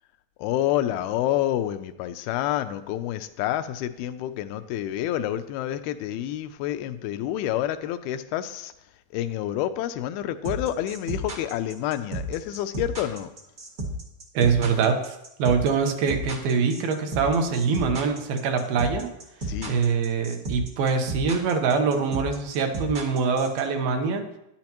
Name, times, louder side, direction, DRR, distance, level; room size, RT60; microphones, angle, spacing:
voice 1, 0.4-8.7 9.1-13.3 19.5-19.8, left 12 dB, 85° left, 10 dB, 2.5 m, -28 dB
sound 1, 10.4-23.6, right 3 dB, 50° right, 1.1 m, -33 dB
voice 2, 14.3-19.1 19.7-24.3, right 5 dB, 80° right, 5 dB, 2.8 m, -24 dB
12.0 x 10.5 x 3.0 m, 0.84 s
omnidirectional pair, 4.3 m